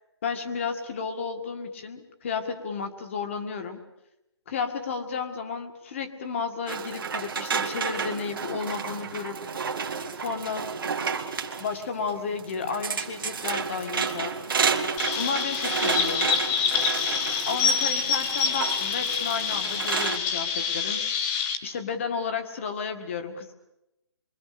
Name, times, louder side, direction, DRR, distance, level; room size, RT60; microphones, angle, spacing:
voice 1, 0.2-3.8 4.5-9.4 10.2-10.6 11.6-14.4 15.2-16.3 17.5-21.1 21.6-23.5, left 5 dB, 30° left, 6 dB, 2.0 m, -32 dB
sound 1, 6.7-20.2, right 5 dB, 50° right, 2.0 m, -31 dB
Chirp tweet, 15.0-21.6, left 6 dB, 10° left, 0.9 m, -26 dB
27.0 x 24.0 x 6.8 m, 0.90 s
hypercardioid pair, 170°, 14 cm